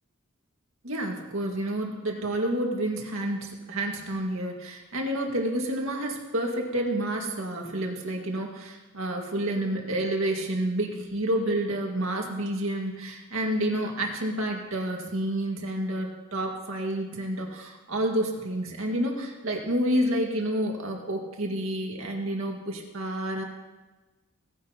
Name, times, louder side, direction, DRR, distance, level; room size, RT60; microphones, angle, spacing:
voice 1, 0.8-23.4, right 1 dB, 75° right, 0 dB, 1.9 m, -29 dB
17.5 x 9.7 x 2.9 m, 1.2 s
head